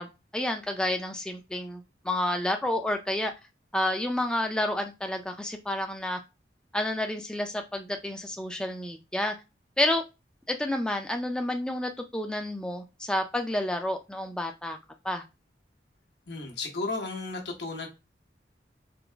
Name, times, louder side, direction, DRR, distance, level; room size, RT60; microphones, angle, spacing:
voice 1, 0.0-3.3 3.7-6.2 6.7-9.3 9.8-10.0 10.5-14.8 15.0-15.2, left 1 dB, 5° left, 0.3 m, -30 dB
voice 2, 16.3-17.9, left 3 dB, 80° left, 1.1 m, -34 dB
3.8 x 2.9 x 3.4 m
head